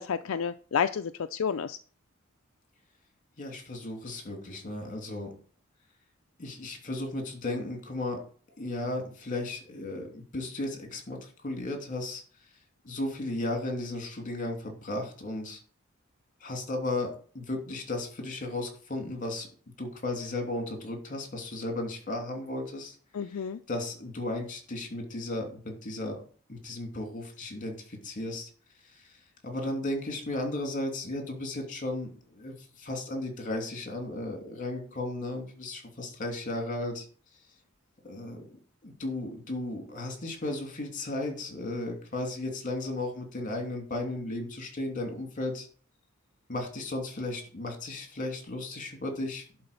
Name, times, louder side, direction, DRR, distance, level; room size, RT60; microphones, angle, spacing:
voice 1, 0.0-1.8 23.1-23.6, left 7 dB, 75° left, 9 dB, 0.4 m, -30 dB
voice 2, 3.4-5.3 6.4-8.2 8.6-12.2 12.8-15.6 16.4-19.5 19.8-23.0 23.7-26.2 26.5-28.5 28.9-29.1 29.4-37.1 38.0-38.4 38.8-45.7 46.5-49.4, left 2 dB, 40° left, 3 dB, 2.8 m, -35 dB
11.0 x 4.2 x 6.7 m, 0.42 s
head